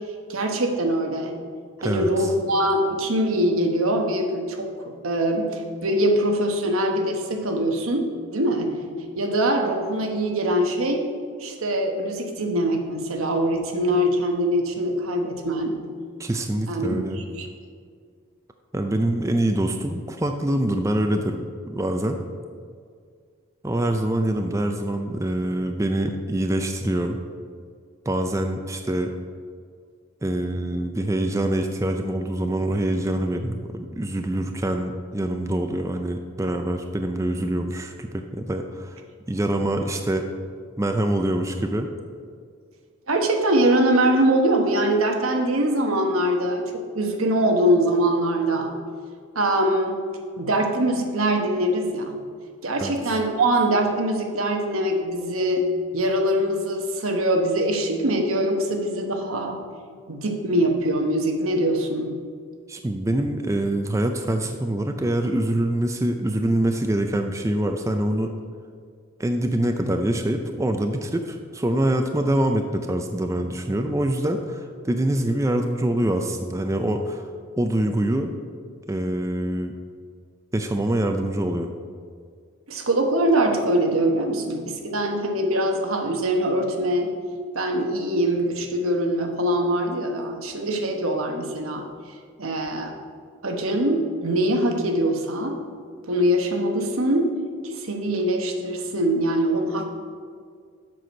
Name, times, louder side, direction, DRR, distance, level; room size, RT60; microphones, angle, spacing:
voice 1, 0.3-1.4 1.8-4.7 5.0-8.8 9.2-11.0 11.4-15.7 16.7-17.5 43.1-46.6 46.9-48.7 49.3-50.0 50.4-52.2 52.6-55.7 55.9-59.6 60.1-62.1 82.7-87.1 87.5-91.8 92.4-92.9 93.4-95.6 96.1-97.4 97.6-99.9, right 1 dB, 90° right, 3 dB, 1.1 m, -23 dB
voice 2, 1.8-2.3 16.2-17.2 18.7-22.2 23.6-27.2 28.1-29.1 30.2-39.0 39.3-40.3 40.8-41.9 52.8-52.9 62.7-68.3 69.2-77.3 77.6-78.3 78.9-79.7 80.5-81.7, right 1 dB, 15° right, 5 dB, 0.4 m, -25 dB
7.6 x 6.2 x 5.2 m, 2.1 s
head